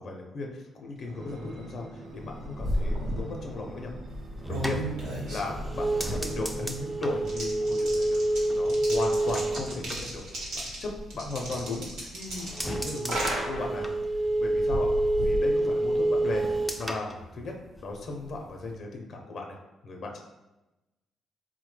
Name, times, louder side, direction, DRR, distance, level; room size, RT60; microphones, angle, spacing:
voice 1, 0.0-3.9 4.5-4.8 5.3-10.2 10.8-13.9 14.4-14.9 15.2-16.5 16.8-17.5 17.8-19.6 19.8-20.2, left 2 dB, 55° left, 1 dB, 0.5 m, -36 dB
sound 1, 1.0-8.9 9.5-10.8 11.4-11.5, right 1 dB, 50° right, 0.7 m, -45 dB
sound 2, 2.2-16.2, equal, 80° right, 1.0 m, -35 dB
sound 3, 4.1-10.9 11.3-12.0 12.3-18.0 18.3-18.7, right 1 dB, ahead, 0.3 m, -29 dB
3.8 x 2.1 x 3.2 m, 1.0 s
cardioid pair, 90°, 0 cm